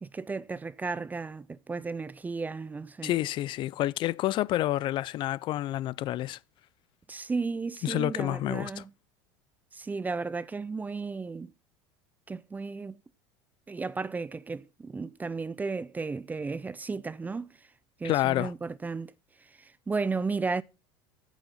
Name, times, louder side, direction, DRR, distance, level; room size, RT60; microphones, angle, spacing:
voice 1, 0.0-3.1 7.1-8.9 9.7-11.5 12.3-13.0 13.7-17.5 18.0-19.1 19.6-20.6, right 4 dB, 15° right, 0.5 m, -34 dB
voice 2, 3.0-6.4 7.8-8.7 18.0-18.5, left 14 dB, 45° left, 0.4 m, -28 dB
8.8 x 6.2 x 5.6 m
supercardioid pair, 110°, 11 cm